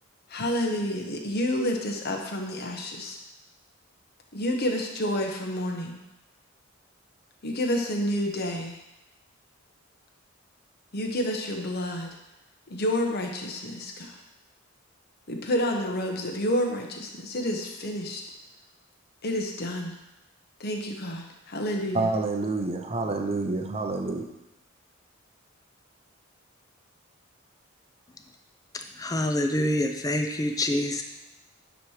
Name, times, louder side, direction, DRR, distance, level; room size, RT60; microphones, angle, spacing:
voice 1, 0.3-3.2 4.3-6.0 7.4-8.8 10.9-12.1 12.7-14.2 15.3-18.2 19.2-19.9 20.6-22.2, left 1 dB, 50° left, 2 dB, 0.9 m, -29 dB
voice 2, 21.9-24.3, right 3 dB, 30° right, 3 dB, 0.6 m, -28 dB
voice 3, 29.0-31.0, left 1 dB, 15° left, 5 dB, 0.5 m, -26 dB
9.2 x 3.1 x 4.9 m, 0.91 s
head